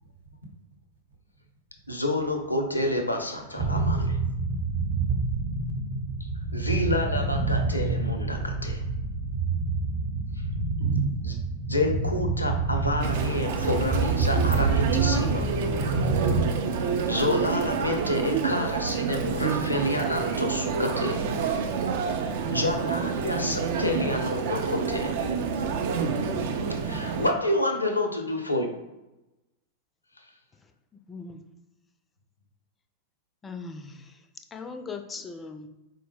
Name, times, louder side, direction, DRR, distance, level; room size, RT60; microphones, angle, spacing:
voice 1, 1.9-4.1 6.5-8.8 11.7-15.5 17.1-21.3 22.4-25.2 26.9-28.7, left 1 dB, 85° left, 4 dB, 0.5 m, -28 dB
sound 1, 3.6-16.5, right 3 dB, 30° right, 0.7 m, -27 dB
voice 2, 10.4-11.8 12.3-12.5, right 5 dB, 75° right, 0 dB, 0.8 m, -36 dB
Chatter, 13.0-27.3, right 5 dB, 55° right, 0.4 m, -28 dB
voice 3, 26.4-26.7 31.1-31.4 33.4-34.2 34.5-35.7, left 4 dB, 20° left, 7 dB, 0.4 m, -39 dB
4.3 x 2.0 x 3.3 m, 0.99 s
figure-of-eight pair, 90°, 0 cm